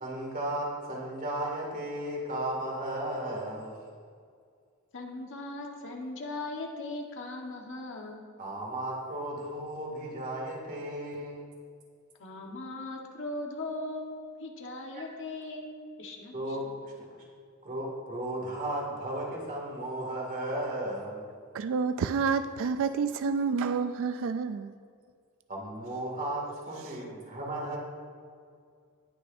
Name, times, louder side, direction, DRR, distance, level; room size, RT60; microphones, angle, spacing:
voice 1, 0.0-3.7 8.4-11.5 14.9-15.0 16.3-17.1 17.6-21.3 25.5-27.8, right 1 dB, 40° right, -2 dB, 2.3 m, -35 dB
voice 2, 4.9-8.3 12.2-16.7, left 2 dB, 60° left, 1 dB, 1.3 m, -39 dB
voice 3, 21.5-24.7, right 5 dB, 65° right, 10 dB, 0.3 m, -29 dB
18.5 x 6.5 x 2.6 m, 2.2 s
head